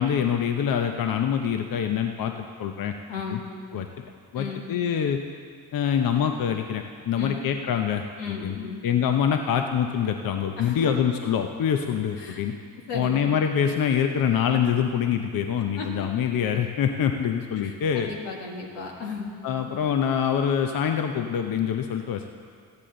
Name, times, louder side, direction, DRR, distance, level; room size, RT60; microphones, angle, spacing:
voice 1, 0.0-2.3 2.6-2.9 3.3-3.4 3.7-3.9 4.3-5.2 5.7-8.6 8.8-12.5 12.9-18.1 19.4-22.3, left 8 dB, 55° left, 5 dB, 0.7 m, -25 dB
voice 2, 3.1-3.5 4.3-4.7 7.1-7.5 8.2-8.8 10.6-11.1 12.2-12.4 12.9-13.3 15.7-16.1 17.6-19.3, left 5 dB, 85° left, 0 dB, 1.6 m, -35 dB
14.0 x 9.8 x 3.8 m, 2.1 s
supercardioid pair, 55°, 41 cm